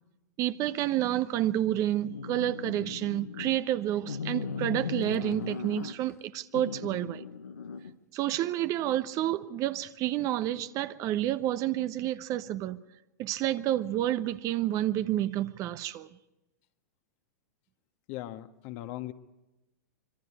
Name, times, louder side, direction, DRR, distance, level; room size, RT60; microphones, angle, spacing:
voice 1, 0.4-7.2 8.1-12.8 13.2-16.1, right 13 dB, 40° right, 1.0 m, -29 dB
sound 1, 2.0-3.5 4.0-6.1 6.5-7.9, left 5 dB, 85° left, 1.4 m, -37 dB
voice 2, 18.1-19.1, left 15 dB, 50° left, 1.5 m, -39 dB
26.0 x 24.5 x 4.9 m
hypercardioid pair, 100°, 9 cm